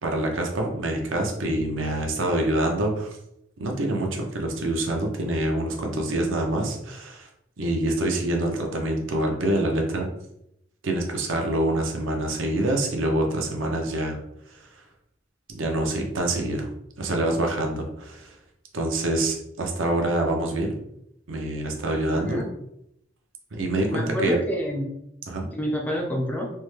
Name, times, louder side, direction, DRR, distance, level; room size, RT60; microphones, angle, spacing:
voice 1, 0.0-3.1 3.6-7.3 7.6-10.1 10.8-14.2 14.5-14.6 15.5-16.7 17.0-18.4 18.7-20.7 21.3-22.4 23.5-24.4 25.3-25.5, right 1 dB, 75° right, 2 dB, 0.7 m, -26 dB
voice 2, 22.1-22.4 23.9-25.0 25.5-26.5, equal, 10° left, 0 dB, 0.3 m, -28 dB
3.3 x 2.1 x 3.1 m, 0.78 s
head